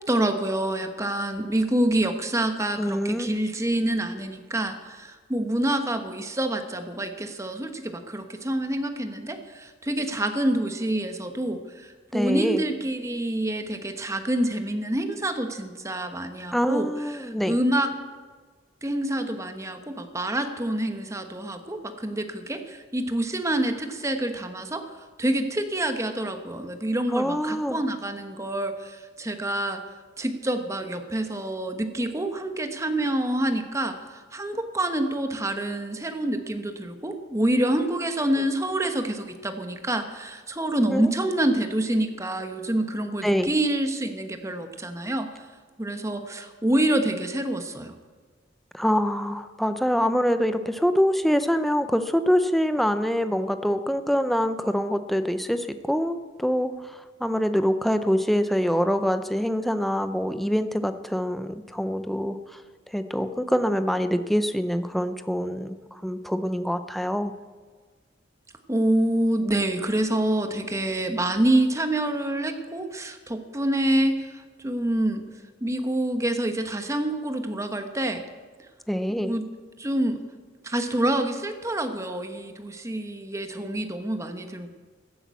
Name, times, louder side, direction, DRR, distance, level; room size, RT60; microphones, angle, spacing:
voice 1, 0.1-16.9 17.1-17.9 18.8-24.9 25.2-29.8 30.2-45.4 45.8-47.9 68.7-75.2 75.6-78.2 79.1-79.5 79.8-80.2 80.6-84.7, right 1 dB, 15° right, 7 dB, 1.1 m, -27 dB
voice 2, 2.8-3.3 12.1-12.6 16.5-17.5 27.1-27.8 40.9-41.0 43.2-43.5 48.7-62.6 62.9-67.3 78.9-79.3, equal, ahead, 9 dB, 0.6 m, -25 dB
15.5 x 8.6 x 8.3 m, 1.5 s
head